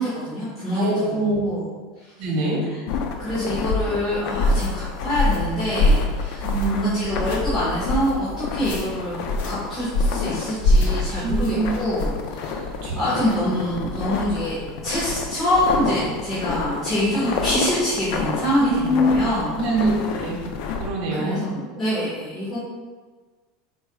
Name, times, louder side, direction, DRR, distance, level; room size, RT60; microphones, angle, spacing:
voice 1, 0.0-1.6 2.0-2.1 3.2-9.2 9.4-19.5 21.1-22.6, equal, 15° left, -11 dB, 1.4 m, -25 dB
voice 2, 0.7-1.4 2.2-2.6 6.4-6.9 11.2-11.7 12.8-13.5 18.6-19.2 19.6-20.4 20.7-21.4, right 1 dB, 55° right, -3 dB, 1.4 m, -24 dB
sound 1, 2.9-20.9, left 5 dB, 55° left, 0.5 m, -30 dB
sound 2, 4.4-4.7 5.1-5.5 5.8-6.1 6.4-6.8 7.1-7.4 7.8-8.1 8.6-8.8 9.3-9.5 9.9-10.2 10.6-10.9 11.3-11.5 12.0-12.2, left 1 dB, 75° left, 0.9 m, -21 dB
4.5 x 4.4 x 2.3 m, 1.4 s
supercardioid pair, 150°, 0 cm